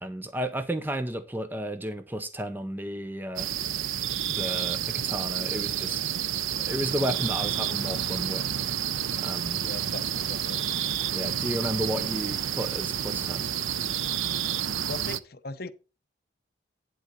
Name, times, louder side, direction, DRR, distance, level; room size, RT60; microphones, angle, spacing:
voice 1, 0.0-3.5 4.3-6.1 6.6-8.6 9.2-9.6 11.1-13.5, equal, 10° right, 0.6 m, -33 dB
sound 1, 3.4-15.2, right 9 dB, 90° right, 0.6 m, -30 dB
voice 2, 9.6-10.6 14.9-15.7, left 3 dB, 50° left, 0.7 m, -39 dB
11.0 x 3.9 x 6.8 m
head